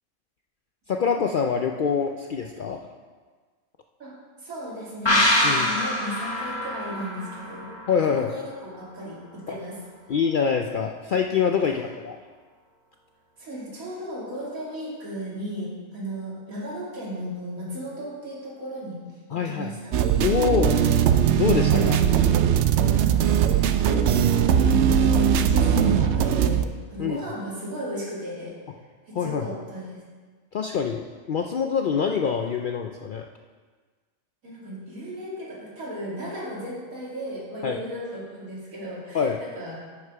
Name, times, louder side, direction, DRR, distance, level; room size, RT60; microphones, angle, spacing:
voice 1, 0.9-2.8 5.4-5.7 7.9-8.3 9.5-9.6 10.1-12.2 19.3-19.7 20.2-20.8 21.4-22.1 27.0-27.2 29.1-29.5 30.5-33.3 37.6-37.8 39.1-39.4, left 6 dB, 75° left, 3 dB, 0.4 m, -25 dB
voice 2, 4.4-7.7 8.2-9.8 11.6-11.8 13.4-19.0 19.3-20.0 23.0-24.2 24.6-26.6 26.9-28.5 29.1-30.0 34.4-39.8, equal, 85° right, -6 dB, 3.0 m, -36 dB
sound 1, 5.1-8.5 8.8-8.9, left 1 dB, 20° left, 1.2 m, -25 dB
sound 2, 19.9-26.6, right 8 dB, 65° right, 0.8 m, -20 dB
10.5 x 6.4 x 4.7 m, 1.5 s
omnidirectional pair, 1.4 m